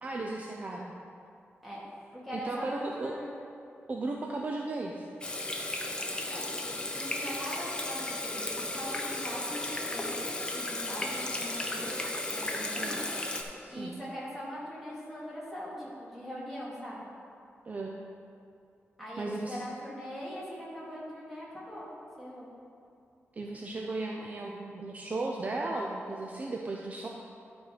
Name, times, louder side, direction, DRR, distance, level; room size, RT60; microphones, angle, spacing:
voice 1, 0.0-0.9 2.3-3.1 3.9-5.1 10.9-11.1 12.8-13.0 13.6-14.0 17.6-18.0 19.2-19.7 23.4-27.1, right 2 dB, 35° right, -1 dB, 0.5 m, -35 dB
voice 2, 2.2-3.3 6.3-10.3 10.5-11.9 12.3-13.0 13.7-17.1 19.0-21.9 22.2-22.5, equal, ahead, -8 dB, 2.3 m, -41 dB
Water tap faucet / Sink (filling or washing), 5.2-13.4, left 2 dB, 20° left, 0.7 m, -34 dB
11.5 x 4.5 x 5.0 m, 2.5 s
wide cardioid pair, 170°, 5 cm